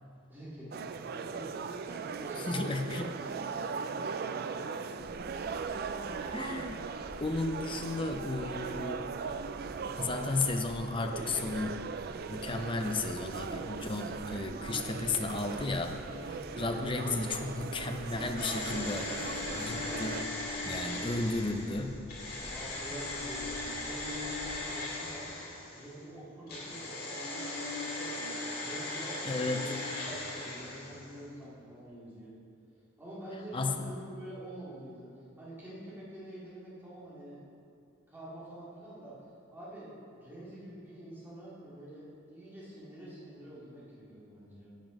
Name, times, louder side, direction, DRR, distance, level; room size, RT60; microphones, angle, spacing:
voice 1, 0.3-2.8 3.2-5.3 22.5-25.3 25.7-29.7 30.0-32.3 33.0-35.1 35.4-37.4 38.1-39.1 39.5-44.7, right 1 dB, 10° right, -9 dB, 2.6 m, -47 dB
sound 1, 0.7-20.2, right 5 dB, 50° right, 0.3 m, -39 dB
voice 2, 2.4-3.1 6.3-6.8 7.2-9.1 10.0-11.9 12.3-19.1 19.5-20.2 20.6-22.0 29.2-29.7 33.5-33.8, left 3 dB, 25° left, 5 dB, 0.6 m, -34 dB
sound 2, 5.0-24.6, equal, 65° left, 2.3 m, -51 dB
sound 3, 18.4-26.0 26.5-31.2 31.4-31.5, left 2 dB, 50° left, 2.2 m, -38 dB
9.3 x 7.0 x 5.2 m, 2.5 s
head